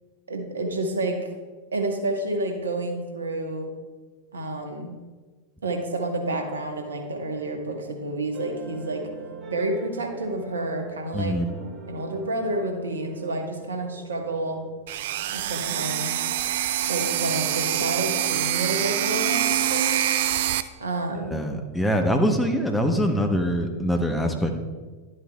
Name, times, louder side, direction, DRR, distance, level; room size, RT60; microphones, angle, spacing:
voice 1, 0.3-1.3 1.7-3.7 4.3-4.9 5.6-9.1 9.5-11.4 11.9-14.6 15.3-16.6 16.9-20.0 20.8-21.5, right 2 dB, 70° right, 3 dB, 1.1 m, -29 dB
sound 1, 7.0-15.6, right 5 dB, 40° right, 0.8 m, -44 dB
voice 2, 11.1-11.4 21.3-24.5, equal, 5° left, 4 dB, 0.8 m, -23 dB
sound 2, 14.9-20.6, right 12 dB, 55° right, 0.3 m, -25 dB
12.0 x 7.8 x 2.2 m, 1.4 s
figure-of-eight pair, 90°, 0 cm